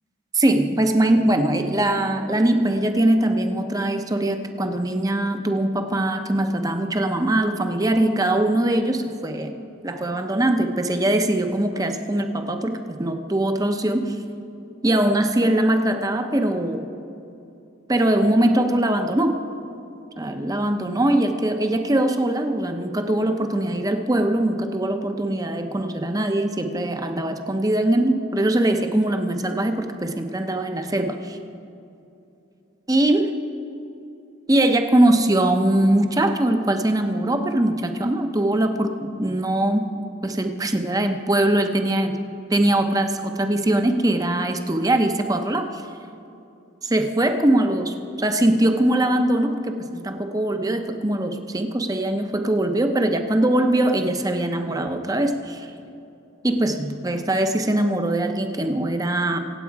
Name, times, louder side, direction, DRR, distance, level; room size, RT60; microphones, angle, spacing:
voice 1, 0.3-9.5 9.8-14.2 14.8-16.9 17.9-19.4 20.2-31.4 32.9-33.3 34.5-39.9 40.2-42.2 42.5-45.8 46.8-55.7 56.4-59.4, right 1 dB, 20° right, 6 dB, 0.8 m, -21 dB
25.0 x 8.4 x 4.7 m, 2.7 s
head